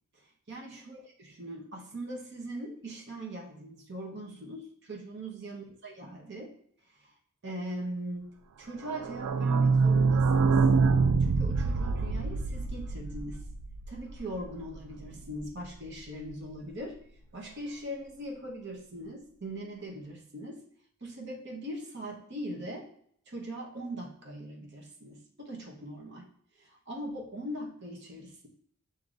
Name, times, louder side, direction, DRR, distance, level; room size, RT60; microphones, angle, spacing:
voice 1, 0.5-6.5 7.4-8.3 8.6-10.6 11.2-13.5 13.9-17.0 17.3-20.6 21.0-22.9 23.3-26.3 26.6-28.5, right 1 dB, 55° right, -1 dB, 1.0 m, -40 dB
sound 1, 8.9-14.4 14.7-14.8 15.0-15.1 15.4-15.5, right 4 dB, 90° right, 0.3 m, -25 dB
6.6 x 2.8 x 2.5 m, 0.63 s
head